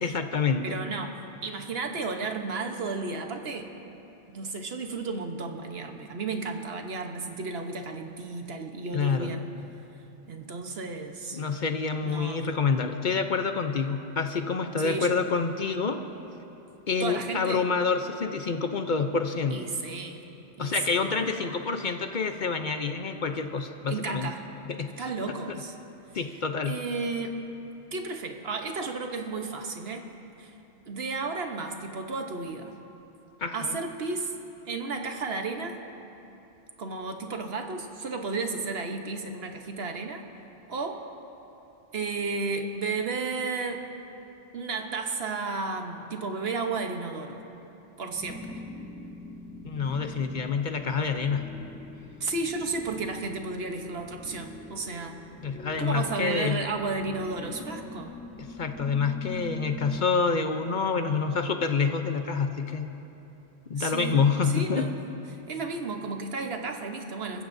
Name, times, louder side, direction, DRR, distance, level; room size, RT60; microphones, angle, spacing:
voice 1, 0.0-0.8 8.9-9.3 11.3-16.0 16.9-19.6 20.6-24.3 24.7-25.1 26.1-26.8 33.4-33.8 49.6-51.5 55.4-56.6 58.4-62.9 63.7-64.9, left 5 dB, 50° left, 6 dB, 0.8 m, -27 dB
voice 2, 0.6-3.7 4.3-9.5 10.3-11.4 12.0-12.5 14.8-15.2 17.0-17.6 19.5-20.2 20.6-21.6 23.9-24.5 25.0-25.7 26.7-27.4 27.9-30.1 30.4-30.5 30.9-32.7 33.5-34.3 34.6-35.8 36.8-40.2 40.7-41.1 41.9-43.9 44.5-47.4 48.0-48.6 52.2-55.2 55.8-58.2 63.8-64.9 65.5-67.4, right 3 dB, 65° right, 4 dB, 1.2 m, -33 dB
sound 1, 48.1-60.1, left 2 dB, 10° left, 0.5 m, -43 dB
29.5 x 14.5 x 2.7 m, 2.9 s
omnidirectional pair, 1.1 m